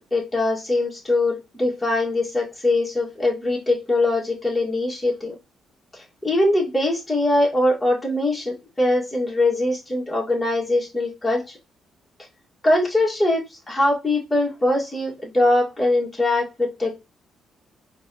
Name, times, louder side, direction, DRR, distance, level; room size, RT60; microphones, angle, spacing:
voice 1, 0.0-5.3 5.9-11.6 12.6-16.9, left 2 dB, 15° left, -3 dB, 2.0 m, -22 dB
4.6 x 2.8 x 2.9 m, 0.25 s
cardioid pair, 90°, 0 cm